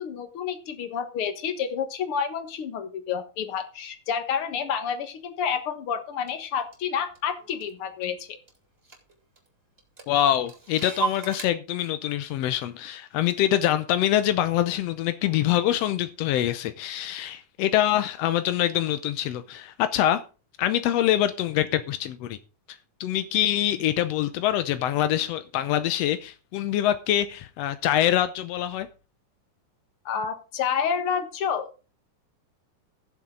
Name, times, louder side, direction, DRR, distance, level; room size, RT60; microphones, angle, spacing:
voice 1, 0.0-8.4 30.1-31.7, left 7 dB, 55° left, 8 dB, 1.9 m, -29 dB
Clock, 6.3-6.4 6.7-8.2 8.5-8.6 8.8-9.5 9.8-11.5, right 6 dB, 20° right, 3.4 m, -35 dB
voice 2, 10.1-20.2 20.6-22.4 22.7-28.9, left 12 dB, 80° left, 12 dB, 1.4 m, -25 dB
16.0 x 7.3 x 3.7 m, 0.33 s
omnidirectional pair, 3.7 m